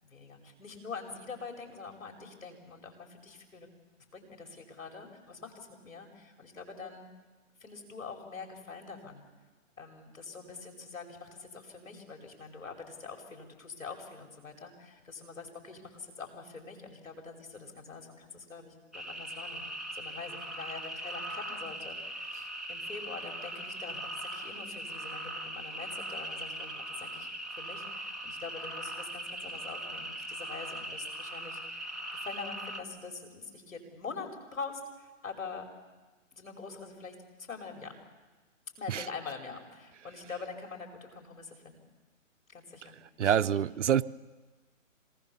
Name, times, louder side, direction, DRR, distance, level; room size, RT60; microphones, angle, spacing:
voice 1, 0.0-3.7 4.1-7.1 7.6-9.3 9.8-35.6 36.3-37.2 37.5-37.9 38.8-41.8 42.5-43.6, left 4 dB, 85° left, 5.5 m, -44 dB
sound 1, 18.9-32.8, right 1 dB, ahead, 1.0 m, -40 dB
voice 2, 43.2-44.0, right 9 dB, 65° right, 0.7 m, -26 dB
26.5 x 19.0 x 7.3 m
hypercardioid pair, 150°, 39 cm